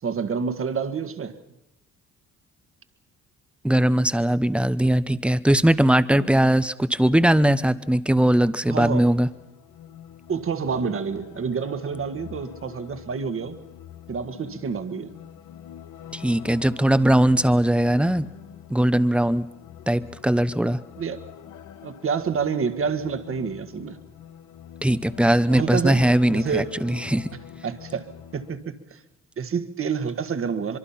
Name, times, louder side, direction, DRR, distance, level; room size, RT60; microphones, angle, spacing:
voice 1, 0.0-1.4 6.1-6.2 8.6-9.0 10.3-13.6 14.1-15.1 21.0-21.2 21.8-24.0 25.5-26.0 26.3-26.7 27.6-28.1 28.3-29.0 29.4-30.8, right 6 dB, 45° right, 10 dB, 1.7 m, -28 dB
voice 2, 3.6-9.3 16.1-18.3 18.7-19.5 19.9-20.8 24.8-27.3, right 1 dB, 5° right, 14 dB, 0.8 m, -20 dB
sound 1, 8.8-28.6, left 10 dB, 85° left, 1.3 m, -45 dB
24.0 x 23.5 x 5.7 m, 0.87 s
cardioid pair, 90°, 30 cm